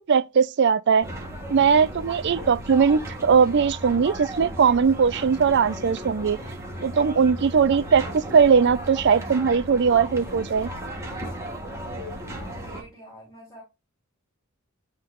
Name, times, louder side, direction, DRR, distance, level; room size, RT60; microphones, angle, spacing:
voice 1, 0.1-1.1 1.5-6.4 6.8-10.7, right 6 dB, 55° right, 0.4 m, -20 dB
sound 1, 1.0-12.8, right 1 dB, 15° right, 1.7 m, -35 dB
voice 2, 12.4-13.6, right 1 dB, 15° left, 3.4 m, -47 dB
10.5 x 3.7 x 2.4 m
head